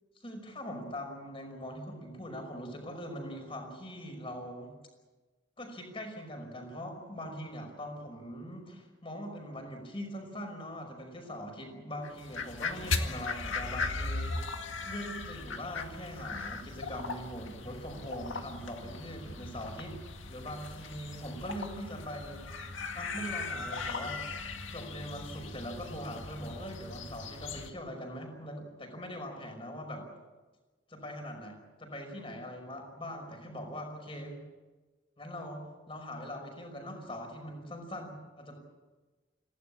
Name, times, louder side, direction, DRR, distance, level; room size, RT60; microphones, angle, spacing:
voice 1, 0.2-4.7 5.6-14.5 14.8-20.0 20.3-22.5 22.9-24.2 24.7-30.1 30.9-34.4 35.2-38.6, equal, 30° left, 4 dB, 5.5 m, -42 dB
sound 1, 12.0-27.7, left 3 dB, 85° left, 2.0 m, -38 dB
26.5 x 17.0 x 8.7 m, 1.3 s
head